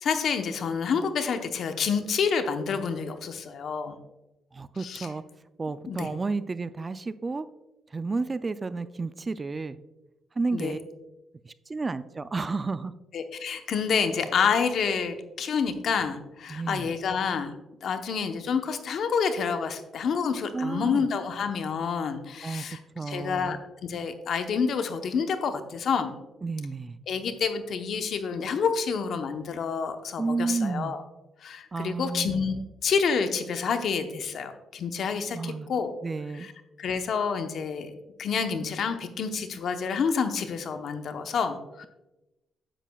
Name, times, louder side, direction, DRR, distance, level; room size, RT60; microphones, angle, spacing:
voice 1, 0.0-4.0 4.8-5.1 5.9-6.1 10.5-10.7 13.1-17.5 17.8-22.8 23.1-26.1 27.1-31.0 31.4-32.5 32.8-35.9 36.4-36.5 36.8-37.9 38.2-41.9, left 6 dB, 65° left, 7 dB, 0.8 m, -28 dB
voice 2, 4.5-5.2 5.6-7.5 7.9-9.8 10.4-10.8 11.4-12.9 16.5-16.9 20.5-21.1 22.4-22.6 22.9-23.6 26.4-27.0 30.2-31.0 31.7-32.5 35.3-35.7 36.0-36.5, right 3 dB, 25° right, 14 dB, 0.3 m, -31 dB
9.9 x 8.1 x 2.3 m, 0.99 s
cardioid pair, 90°, 0 cm